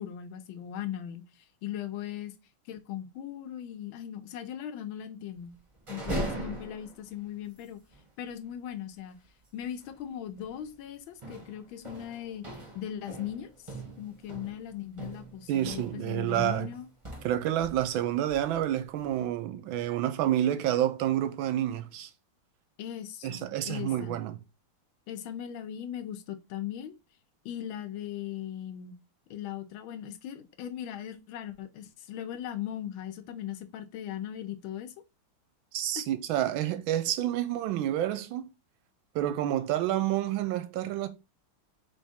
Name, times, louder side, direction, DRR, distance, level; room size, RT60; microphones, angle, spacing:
voice 1, 0.0-2.3 2.7-5.5 5.9-7.8 8.2-9.2 9.5-12.5 12.7-16.9 22.8-24.2 25.1-26.9 27.4-28.9 29.3-34.9 36.0-36.1, left 10 dB, 75° left, 1.3 m, -39 dB
sound 1, 5.7-7.2 7.6-7.7 7.9-8.1 9.7-10.0 10.4-10.7 11.2-18.0 18.3-19.2, right 1 dB, 20° right, 1.0 m, -40 dB
voice 2, 15.5-16.7 17.2-22.1 23.2-24.4 35.7-38.5 39.1-41.1, right 12 dB, 75° right, 1.3 m, -29 dB
3.5 x 3.5 x 4.2 m
omnidirectional pair, 2.4 m